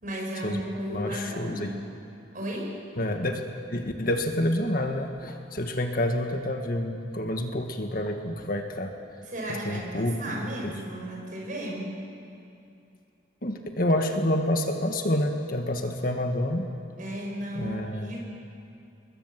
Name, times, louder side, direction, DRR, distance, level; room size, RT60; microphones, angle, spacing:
voice 1, 0.0-1.8 2.3-2.8 9.3-11.9 17.0-18.3, equal, 45° right, -1 dB, 6.6 m, -34 dB
voice 2, 0.9-1.7 3.0-3.4 3.7-8.9 9.7-10.4 10.6-10.8 13.4-16.7 17.5-18.2, left 1 dB, 50° left, 4 dB, 1.8 m, -28 dB
28.5 x 21.5 x 7.6 m, 2.6 s
head